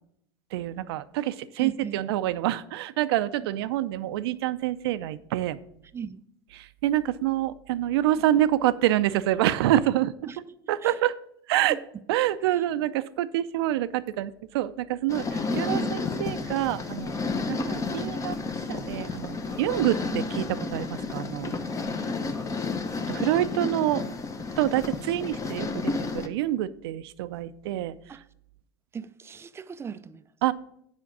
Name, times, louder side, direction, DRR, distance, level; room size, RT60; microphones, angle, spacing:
voice 1, 0.5-5.6 6.6-10.1 10.7-11.2 11.5-11.8 12.1-17.1 17.5-18.3 18.7-21.6 23.1-24.0 24.6-28.0 30.4-30.5, right 13 dB, 80° right, 0.5 m, -27 dB
voice 2, 1.6-2.0 5.9-6.2 10.3-10.6 10.8-11.0 11.7-12.0 12.4-12.6 15.5-15.9 17.9-18.3 23.4-23.5 28.1-28.3 28.9-30.3, right 7 dB, 20° right, 0.4 m, -39 dB
sound 1, 15.1-26.3, left 3 dB, 25° left, 0.8 m, -31 dB
7.1 x 5.1 x 6.0 m
supercardioid pair, 100°, 13 cm